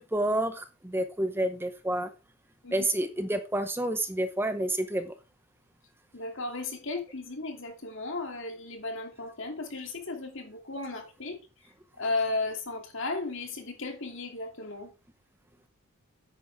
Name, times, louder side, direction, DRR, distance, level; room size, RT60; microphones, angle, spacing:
voice 1, 0.0-2.1 2.7-5.1, right 1 dB, 10° right, 0.7 m, -29 dB
voice 2, 6.1-11.4 12.0-14.9, left 3 dB, 60° left, 2.7 m, -35 dB
10.0 x 9.0 x 3.5 m
head